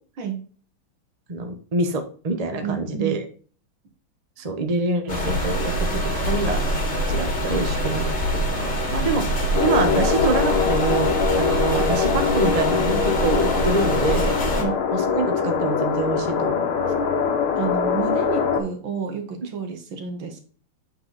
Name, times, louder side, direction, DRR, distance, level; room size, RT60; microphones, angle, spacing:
voice 1, 1.3-3.2 4.4-6.6 7.1-14.4 14.9-16.8, right 3 dB, 30° right, 6 dB, 0.7 m, -26 dB
voice 2, 2.6-3.2 14.5-14.8 17.6-20.4, right 6 dB, 70° right, 4 dB, 2.2 m, -30 dB
sound 1, 5.1-14.6, equal, 30° left, 1.4 m, -25 dB
sound 2, 9.5-18.6, left 6 dB, 85° left, 1.9 m, -23 dB
8.3 x 4.0 x 3.9 m, 0.42 s
omnidirectional pair, 2.3 m